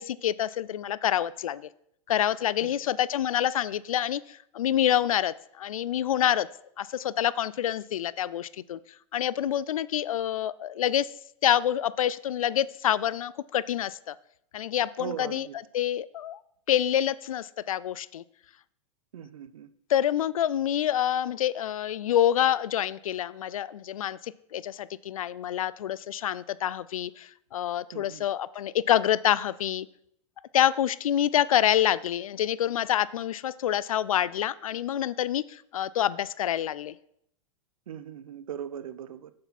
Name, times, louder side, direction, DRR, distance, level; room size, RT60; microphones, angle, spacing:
voice 1, 0.0-1.7 2.1-6.5 6.8-8.8 9.1-11.1 11.4-14.1 14.5-15.5 15.7-16.4 16.7-18.2 19.9-29.9 30.5-36.9, left 11 dB, 80° left, 19 dB, 0.5 m, -27 dB
voice 2, 15.0-15.6 19.1-19.7 27.9-28.2 37.9-39.3, right 9 dB, 75° right, 14 dB, 0.7 m, -39 dB
8.2 x 7.6 x 4.2 m, 0.71 s
hypercardioid pair, 110°, 18 cm